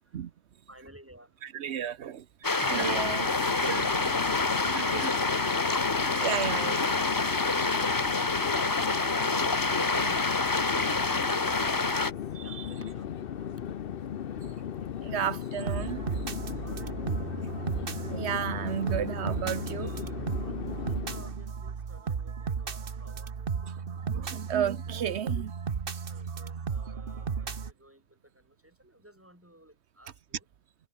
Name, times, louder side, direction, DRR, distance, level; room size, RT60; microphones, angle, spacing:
voice 1, 0.7-1.3 9.6-11.9 12.4-13.7 16.5-17.1 21.0-23.9 26.0-30.4, right 1 dB, 10° right, 4.3 m, -54 dB
voice 2, 1.4-2.3 2.5-4.2 4.7-5.1 6.0-7.0 9.2-10.2 12.3-12.7 15.0-16.3 18.0-20.0 23.6-25.6 25.9-26.1, right 9 dB, 85° right, 1.1 m, -34 dB
sound 1, 2.4-12.1, left 3 dB, 20° left, 0.8 m, -27 dB
Chatter / Fixed-wing aircraft airplane, 2.5-21.4, left 9 dB, 60° left, 0.9 m, -37 dB
sound 2, 15.6-27.7, right 6 dB, 55° right, 1.3 m, -34 dB
omnidirectional pair, 1.1 m